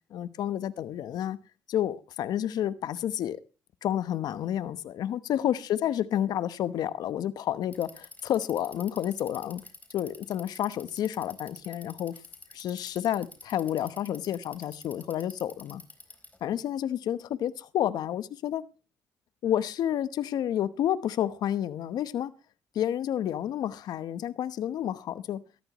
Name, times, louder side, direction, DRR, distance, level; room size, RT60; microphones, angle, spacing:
voice 1, 0.1-1.4 1.7-3.4 3.8-9.6 9.9-12.1 12.5-15.8 16.4-18.6 19.4-22.3 22.7-25.4, left 11 dB, 70° left, 1.0 m, -30 dB
Bicycle, 7.6-16.4, left 2 dB, 25° left, 4.2 m, -48 dB
19.0 x 14.0 x 3.0 m
supercardioid pair, 55°, 7 cm